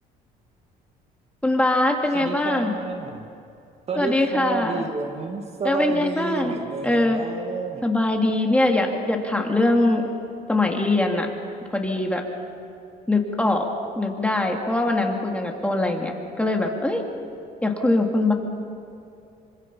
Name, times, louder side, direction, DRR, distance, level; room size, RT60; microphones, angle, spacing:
voice 1, 1.4-2.8 4.0-4.8 5.6-6.6 6.8-7.2 7.8-10.0 10.5-11.3 11.7-12.2 13.1-13.7 14.0-17.0 17.6-18.3, left 2 dB, 5° left, 1 dB, 2.8 m, -22 dB
voice 2, 2.1-3.3 3.9-7.9, right 4 dB, 40° right, 4 dB, 2.2 m, -30 dB
27.0 x 25.0 x 5.6 m, 2.6 s
cardioid pair, 110°, 17 cm